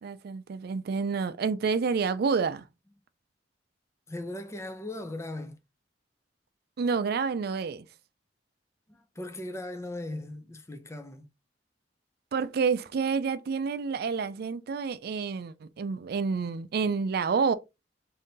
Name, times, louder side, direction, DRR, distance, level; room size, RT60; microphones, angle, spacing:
voice 1, 0.0-2.6 6.8-7.8 12.3-17.5, right 5 dB, 60° right, 0.4 m, -29 dB
voice 2, 4.1-5.6 8.9-11.2, left 1 dB, 15° left, 0.6 m, -38 dB
3.7 x 2.7 x 3.9 m
head